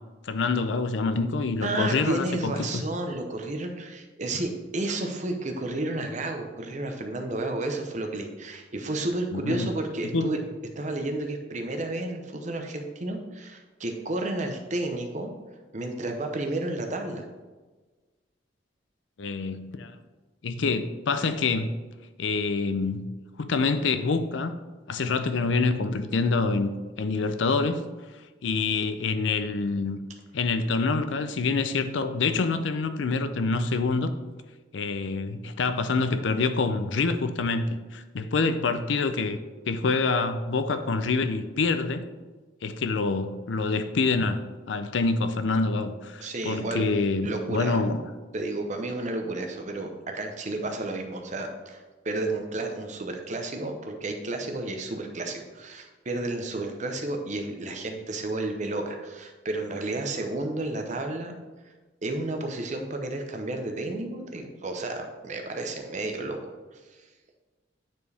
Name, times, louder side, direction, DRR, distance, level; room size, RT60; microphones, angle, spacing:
voice 1, 0.2-2.8 9.3-9.7 10.1-10.3 19.2-20.0 20.4-21.8 22.2-23.1 23.4-24.5 24.9-26.7 27.0-27.8 28.4-30.0 30.3-34.1 34.7-39.4 39.7-42.1 42.6-44.4 44.7-48.1, left 4 dB, 75° left, 0.5 m, -26 dB
voice 2, 1.6-10.4 10.8-15.3 15.7-17.2 46.2-46.8 47.2-47.8 48.3-49.9 50.1-61.3 62.0-66.5, right 2 dB, 40° right, 0.8 m, -31 dB
9.6 x 4.4 x 3.4 m
head